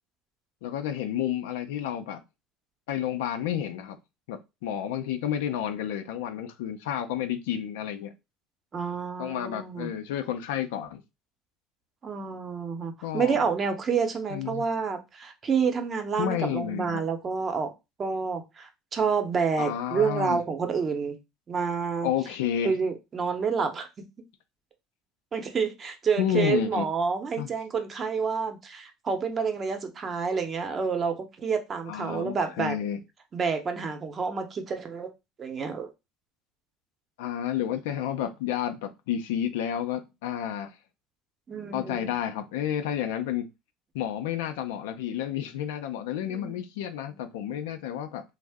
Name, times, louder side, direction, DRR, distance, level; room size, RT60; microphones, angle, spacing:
voice 1, 0.6-2.2 2.9-4.0 4.3-8.1 9.2-11.0 13.0-13.4 14.3-14.7 16.2-17.0 19.6-20.4 22.0-22.7 26.2-26.9 27.4-27.5 31.9-33.0 37.2-40.7 41.7-43.4 43.9-48.2, left 10 dB, 85° left, 0.4 m, -30 dB
voice 2, 8.7-9.9 12.0-17.7 18.0-21.2 21.5-22.1 22.6-23.9 25.3-32.8 33.3-35.1 35.4-35.9 41.5-42.1 46.2-46.6 47.5-47.6, right 5 dB, 35° right, 0.7 m, -29 dB
2.6 x 2.0 x 3.4 m
supercardioid pair, 85°, 0 cm